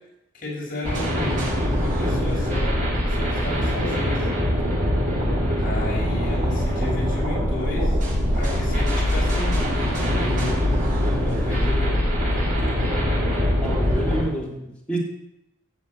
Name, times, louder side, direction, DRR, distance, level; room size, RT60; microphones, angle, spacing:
voice 1, 0.3-2.8 3.1-4.2 5.6-7.9 8.3-10.5 11.2-12.0, left 1 dB, 45° left, -3 dB, 6.9 m, -33 dB
sound 1, 0.8-14.2, equal, 40° right, 5.9 m, -23 dB
voice 2, 13.6-15.0, right 1 dB, 5° left, -4 dB, 3.4 m, -29 dB
15.0 x 7.4 x 8.8 m, 0.87 s
head